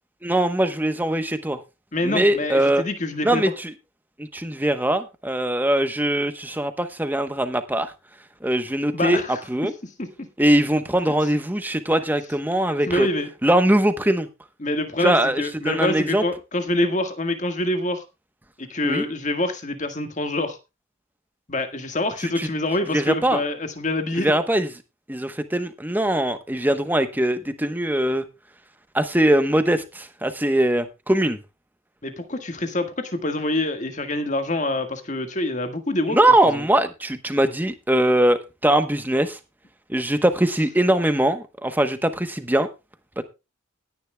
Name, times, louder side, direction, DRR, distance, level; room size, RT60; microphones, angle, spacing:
voice 1, 0.2-1.6 2.0-2.8 3.2-3.7 4.2-7.9 8.4-9.2 9.5-9.7 10.4-13.1 13.4-14.3 15.0-16.2 18.8-19.0 22.4-22.5 22.9-23.4 24.2-24.7 25.1-28.2 28.9-31.4 36.1-39.4 39.9-42.7 43.2-43.3, right 1 dB, 10° right, 0.9 m, -21 dB
voice 2, 1.9-3.4 8.9-9.4 10.0-10.3 12.9-13.3 14.6-18.0 18.6-20.6 21.5-24.3 32.0-36.2 36.5-36.6, left 2 dB, 35° left, 1.6 m, -26 dB
19.0 x 10.0 x 2.3 m
head